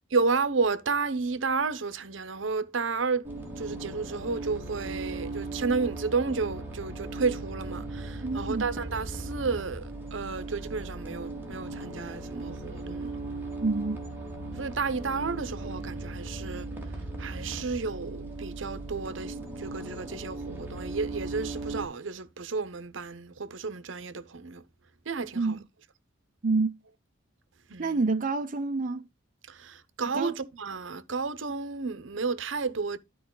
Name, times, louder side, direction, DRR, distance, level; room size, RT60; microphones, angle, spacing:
voice 1, 0.1-3.3 3.6-13.2 14.5-16.7 17.2-24.6 25.1-25.6 27.7-28.0 29.5-33.0, right 4 dB, 75° right, 0.8 m, -32 dB
sound 1, 3.2-21.9, right 2 dB, 10° right, 2.6 m, -38 dB
voice 2, 8.2-8.7 13.6-14.0 14.4-14.5 25.3-25.6 26.4-26.7 27.8-29.0 30.1-30.3, right 3 dB, 45° right, 0.6 m, -27 dB
12.5 x 4.7 x 3.9 m
head